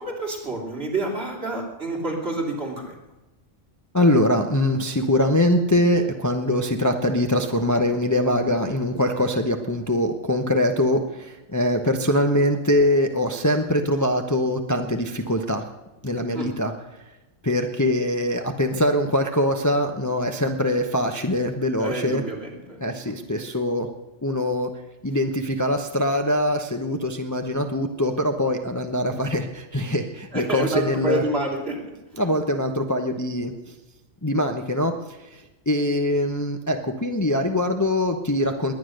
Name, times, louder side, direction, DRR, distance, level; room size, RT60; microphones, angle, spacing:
voice 1, 0.0-2.9 16.3-16.5 21.8-23.2 30.3-32.2, right 2 dB, 50° right, 0 dB, 3.6 m, -29 dB
voice 2, 3.9-15.6 16.0-16.7 17.4-22.2 22.8-23.9 24.2-24.7 25.0-31.2 32.2-33.7 34.2-34.9 35.3-38.7, left 1 dB, 15° left, 5 dB, 0.9 m, -23 dB
21.0 x 9.8 x 6.6 m, 1.0 s
omnidirectional pair, 1.3 m